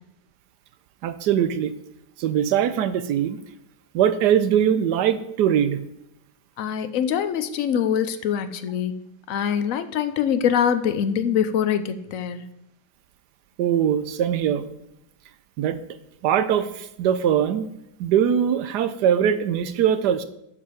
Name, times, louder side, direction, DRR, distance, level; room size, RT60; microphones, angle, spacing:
voice 1, 1.0-1.7 2.2-3.4 3.9-5.8 13.6-14.7 15.6-15.8 16.2-17.7 18.0-20.2, right 9 dB, 75° right, 12 dB, 1.3 m, -21 dB
voice 2, 6.6-8.9 9.3-12.4, left 8 dB, 65° left, 11 dB, 0.9 m, -24 dB
12.5 x 5.0 x 5.0 m, 0.81 s
omnidirectional pair, 1.8 m